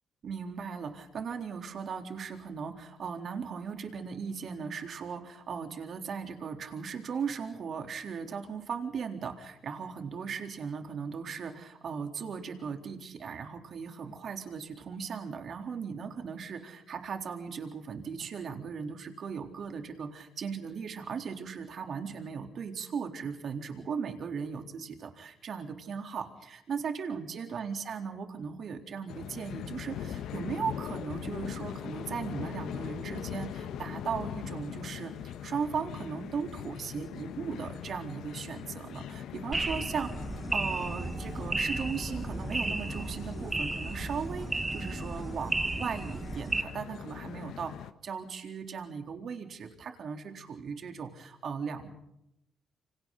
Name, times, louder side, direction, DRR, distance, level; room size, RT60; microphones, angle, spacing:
voice 1, 0.2-40.1 40.5-47.7 48.0-51.9, right 6 dB, 55° right, 5 dB, 3.9 m, -37 dB
sound 1, 29.1-47.9, left 9 dB, 80° left, 1.4 m, -41 dB
sound 2, 39.5-46.6, right 2 dB, 20° right, 1.8 m, -34 dB
28.5 x 26.5 x 4.2 m, 0.81 s
cardioid pair, 90°, 0 cm